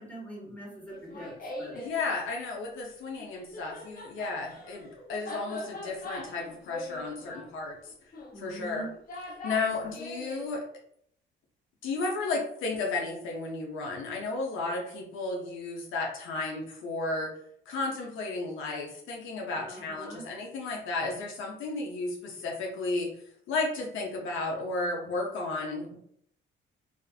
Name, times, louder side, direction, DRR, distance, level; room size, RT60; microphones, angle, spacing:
voice 1, 0.0-1.3 1.6-1.7 8.3-8.9 9.8-9.9 19.5-20.2, right 1 dB, 5° left, -6 dB, 1.4 m, -43 dB
Laughter, 0.9-2.0 3.2-10.5, left 1 dB, 45° left, 0.7 m, -42 dB
voice 2, 1.7-8.9 9.4-10.6 11.8-17.3 17.7-23.1 23.5-26.0, left 3 dB, 80° left, -1 dB, 0.6 m, -33 dB
2.4 x 2.4 x 2.3 m, 0.69 s
cardioid pair, 90°, 20 cm